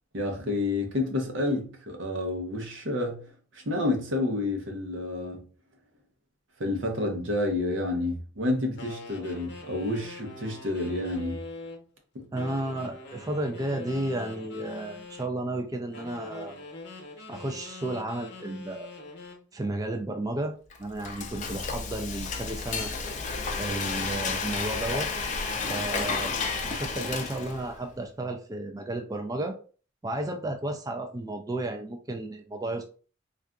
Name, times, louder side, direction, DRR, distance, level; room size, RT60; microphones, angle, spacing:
voice 1, 0.1-5.5 6.6-11.4 12.1-12.2, left 2 dB, 80° right, 0.8 m, -29 dB
sound 1, 8.8-11.8 12.3-15.3 15.9-19.4, left 3 dB, 60° left, 0.8 m, -43 dB
voice 2, 12.3-16.6 17.3-18.9 19.5-20.5 20.8-22.9 23.6-25.1 25.7-26.3 26.6-29.5 30.0-32.8, right 1 dB, 20° right, 0.3 m, -33 dB
Frying (food), 20.7-27.8, left 4 dB, 40° left, 0.5 m, -32 dB
3.7 x 2.4 x 2.2 m
head